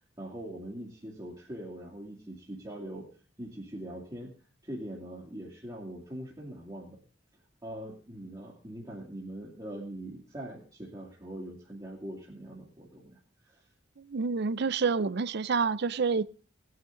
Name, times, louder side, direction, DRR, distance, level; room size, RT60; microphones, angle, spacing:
voice 1, 0.2-3.1 3.4-4.3 4.6-7.0 7.6-13.2 13.5-13.6, right 1 dB, 20° right, 2.4 m, -42 dB
voice 2, 14.0-16.2, right 5 dB, 60° right, 0.5 m, -28 dB
18.5 x 9.5 x 3.8 m
head